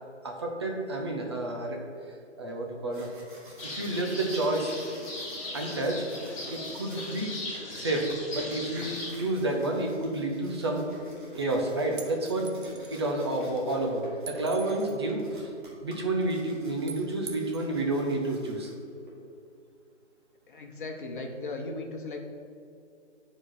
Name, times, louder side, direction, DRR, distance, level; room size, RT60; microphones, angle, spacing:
voice 1, 0.2-1.8 2.4-3.1 3.6-4.7 5.5-6.0 6.5-7.3 7.7-10.9 11.4-12.5 12.9-15.5 15.8-18.7, right 2 dB, 20° right, 1 dB, 0.7 m, -30 dB
sound 1, 2.7-19.1, right 1 dB, 40° right, 2.0 m, -48 dB
sound 2, 3.6-9.1, left 2 dB, 25° left, 1.7 m, -39 dB
sound 3, 12.0-13.0 14.3-15.0 16.9-17.7, right 5 dB, 75° right, 0.9 m, -43 dB
voice 2, 20.5-22.2, left 2 dB, 45° left, 2 dB, 1.1 m, -37 dB
9.6 x 4.9 x 4.3 m, 2.5 s
figure-of-eight pair, 155°, 36 cm